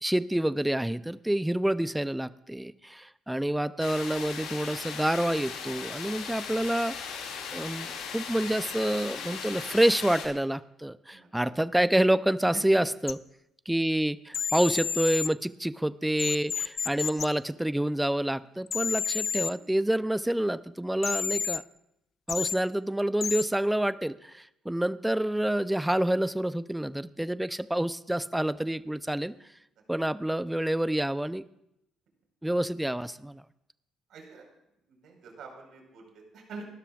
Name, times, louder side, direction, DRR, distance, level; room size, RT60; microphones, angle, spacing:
voice 1, 0.0-6.9 7.5-13.2 13.7-21.6 22.3-29.3 29.9-31.4 32.4-33.4, right 1 dB, 5° right, 14 dB, 0.6 m, -28 dB
sound 1, 3.8-10.3, left 6 dB, 75° left, 2.4 m, -38 dB
voice 2, 11.1-11.5 12.5-12.6 19.5-19.8 34.1-34.5 34.9-36.6, right 4 dB, 65° right, 1 dB, 4.9 m, -46 dB
sound 2, 13.1-13.2 14.3-15.3 16.2-17.2 18.7-19.5 21.0-21.6 22.3-22.5 23.2-23.4, left 7 dB, 50° left, 0.4 m, -30 dB
28.5 x 12.5 x 2.5 m, 0.82 s
hypercardioid pair, 55°, 0 cm